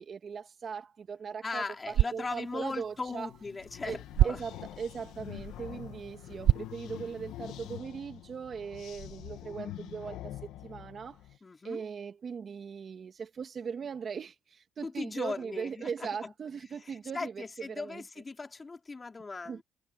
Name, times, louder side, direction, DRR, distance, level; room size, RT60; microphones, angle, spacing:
voice 1, 0.0-3.3 3.8-4.0 4.2-11.2 11.6-18.0 19.5-19.6, right 6 dB, 50° right, 2.2 m, -39 dB
voice 2, 1.4-4.4 11.4-11.8 14.8-16.3 16.8-19.6, left 3 dB, 30° left, 4.9 m, -39 dB
sound 1, 1.8-7.8, right 12 dB, 75° right, 0.7 m, -32 dB
sound 2, 3.3-11.4, left 13 dB, 90° left, 1.6 m, -45 dB
cardioid pair, 90°, 0 cm